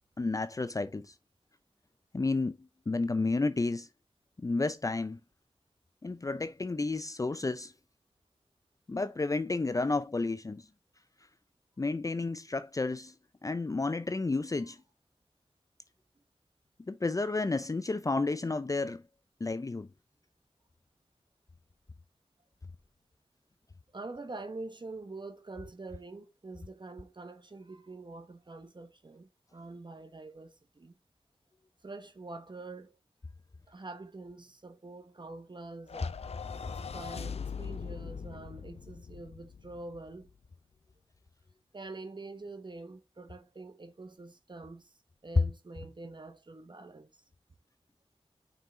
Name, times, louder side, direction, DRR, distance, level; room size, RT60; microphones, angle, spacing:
voice 1, 0.2-1.1 2.1-2.6 2.9-3.9 4.4-5.2 6.0-7.7 8.9-10.7 11.8-13.1 13.4-14.8 16.9-19.0 19.4-19.9, left 3 dB, 35° left, 0.5 m, -31 dB
voice 2, 23.9-30.9 31.8-33.0 33.7-36.6 36.9-40.3 41.7-44.9 45.2-47.2, right 3 dB, 50° right, 1.0 m, -45 dB
sound 1, 35.9-40.3, left 6 dB, 85° left, 0.5 m, -41 dB
5.7 x 5.5 x 3.9 m
cardioid pair, 45°, 10 cm